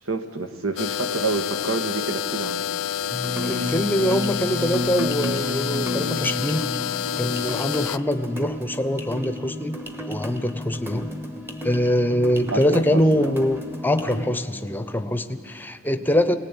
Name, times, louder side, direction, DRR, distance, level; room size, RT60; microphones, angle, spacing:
voice 1, 0.0-2.6 12.5-13.3, right 3 dB, 80° right, 6 dB, 1.7 m, -28 dB
sound 1, 0.8-8.0, left 9 dB, 85° left, 0.5 m, -28 dB
sound 2, 3.1-14.2, left 1 dB, 10° right, 1.1 m, -32 dB
voice 2, 3.4-9.8 10.1-11.1 11.6-16.4, equal, 10° left, 10 dB, 0.8 m, -24 dB
24.5 x 18.5 x 9.1 m, 2.4 s
head